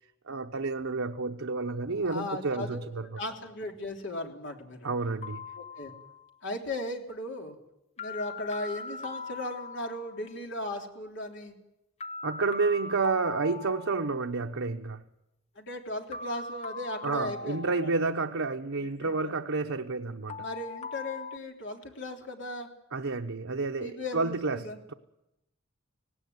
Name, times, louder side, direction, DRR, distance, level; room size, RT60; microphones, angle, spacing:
voice 1, 0.3-3.1 4.8-5.5 12.2-15.0 17.0-20.5 22.9-24.9, right 3 dB, 80° right, 0.9 m, -30 dB
voice 2, 2.0-2.8 3.2-4.9 5.6-5.9 6.4-7.6 8.0-11.5 15.5-17.9 19.0-19.3 20.4-22.7 23.8-24.8, left 1 dB, 60° left, 3.4 m, -37 dB
sound 1, 5.2-6.4 8.0-10.3 12.0-14.3 16.1-18.5 20.3-21.4, left 4 dB, 30° left, 0.7 m, -41 dB
18.5 x 17.5 x 9.5 m
head